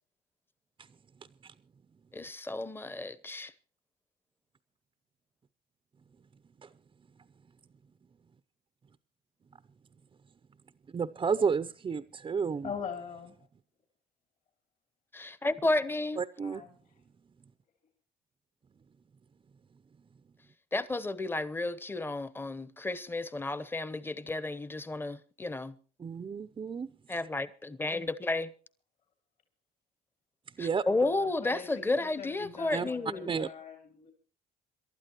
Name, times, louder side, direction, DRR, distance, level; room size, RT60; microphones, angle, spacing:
voice 1, 2.1-3.5 15.1-16.2 20.7-25.7 27.1-28.5 30.6-33.4, left 2 dB, 15° left, 0.9 m, -32 dB
voice 2, 10.9-12.7 16.2-16.6 26.0-26.9 30.6-30.8 32.7-32.9 33.3-33.5, right 6 dB, 30° right, 0.6 m, -31 dB
voice 3, 12.6-13.4 16.4-16.8 30.9-34.1, left 6 dB, 50° left, 3.1 m, -42 dB
27.5 x 12.0 x 3.0 m
cardioid pair, 110°, 17 cm